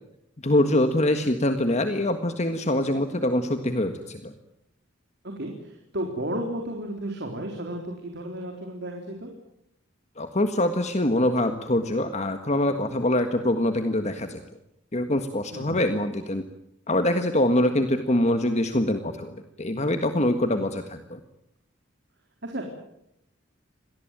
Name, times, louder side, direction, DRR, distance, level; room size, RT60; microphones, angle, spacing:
voice 1, 0.4-4.3 10.2-14.4 14.9-16.4 16.9-21.2, left 1 dB, 35° left, 8 dB, 1.6 m, -24 dB
voice 2, 5.2-9.3 15.5-15.8 20.5-20.6 22.4-22.6, right 1 dB, 60° right, 2 dB, 4.1 m, -33 dB
26.0 x 19.0 x 9.2 m, 0.79 s
head